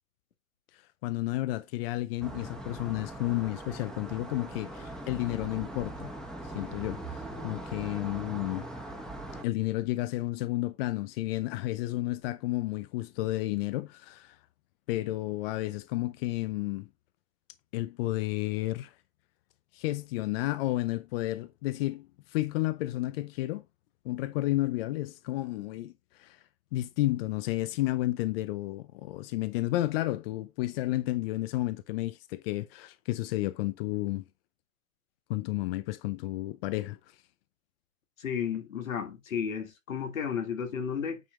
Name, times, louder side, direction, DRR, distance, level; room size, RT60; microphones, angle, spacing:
voice 1, 0.7-6.1 6.4-8.7 9.4-14.4 14.9-16.9 17.7-18.9 19.7-23.6 24.0-26.4 26.7-34.2 35.3-37.0, left 17 dB, 45° left, 0.6 m, -32 dB
sound 1, 2.2-9.4, right 1 dB, ahead, 1.2 m, -41 dB
voice 2, 38.2-41.2, left 7 dB, 85° left, 2.0 m, -33 dB
9.4 x 3.5 x 3.7 m
hypercardioid pair, 130°, 39 cm